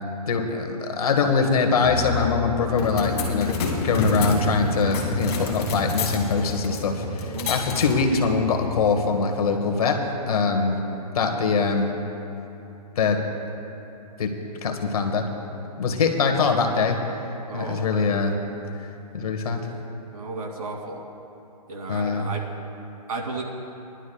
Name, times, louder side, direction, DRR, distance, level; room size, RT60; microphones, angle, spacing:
voice 1, 0.3-3.5 3.8-10.8 11.1-12.0 13.0-13.2 14.2-14.3 14.6-15.3 15.8-17.0 17.5-18.4 19.1-19.7 21.9-22.3, left 4 dB, 65° left, 4 dB, 1.4 m, -23 dB
Brass instrument, 1.7-9.2, left 9 dB, 10° left, 0.4 m, -35 dB
sound 1, 2.6-10.0, left 4 dB, 40° left, 1.9 m, -34 dB
sound 2, 2.8-8.6, right 1 dB, 25° left, 1.4 m, -31 dB
voice 2, 17.5-17.9 20.1-21.0 21.7-22.4 23.1-23.4, right 3 dB, 70° right, -1 dB, 2.6 m, -33 dB
21.5 x 11.5 x 2.3 m, 2.9 s
hypercardioid pair, 160°, 20 cm